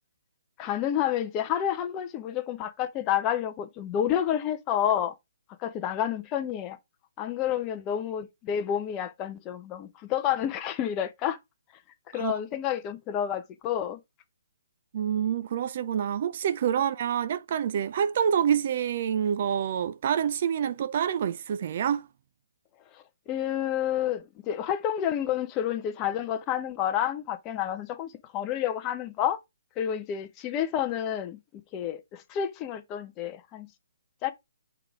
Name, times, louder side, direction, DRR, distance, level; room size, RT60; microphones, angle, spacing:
voice 1, 0.6-5.1 5.6-6.8 7.2-11.4 12.1-14.0 22.9-29.4 29.8-31.4 31.7-33.7 34.2-34.3, left 10 dB, 20° left, 0.8 m, -29 dB
voice 2, 14.9-22.1, right 8 dB, 45° right, 0.5 m, -27 dB
5.8 x 3.5 x 4.7 m
hypercardioid pair, 155°, 0 cm